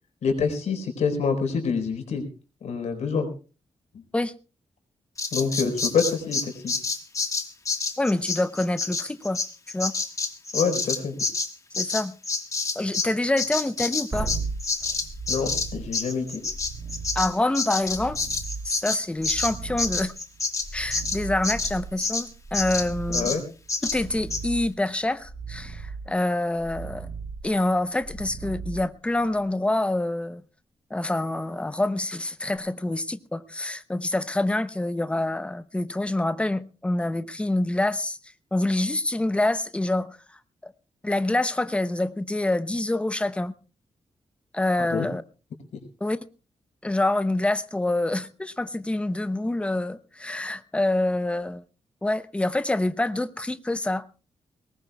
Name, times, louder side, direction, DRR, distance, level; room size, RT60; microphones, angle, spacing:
voice 1, 0.2-2.2 2.6-3.3 5.3-6.7 10.5-11.2 15.3-16.4 23.1-23.4 44.8-45.1, left 5 dB, 85° left, 4.3 m, -26 dB
Bird vocalization bird call bird song, 5.2-13.1 13.4-22.3 22.5-22.9 23.1-23.4 23.7-24.0 24.3-24.4, left 4 dB, 30° left, 1.5 m, -28 dB
voice 2, 8.0-9.4 9.7-9.9 11.7-12.2 12.8-14.3 17.1-18.2 18.6-20.1 20.7-23.4 23.8-27.1 27.4-30.4 30.9-38.2 38.5-40.2 40.6-40.7 41.0-43.5 44.5-45.2 46.0-46.2 46.8-51.6 52.0-54.1, left 2 dB, 10° left, 0.7 m, -26 dB
sound 1, 14.1-29.4 32.6-32.7, right 4 dB, 25° right, 2.8 m, -37 dB
22.0 x 19.5 x 2.3 m
wide cardioid pair, 150°, 11 cm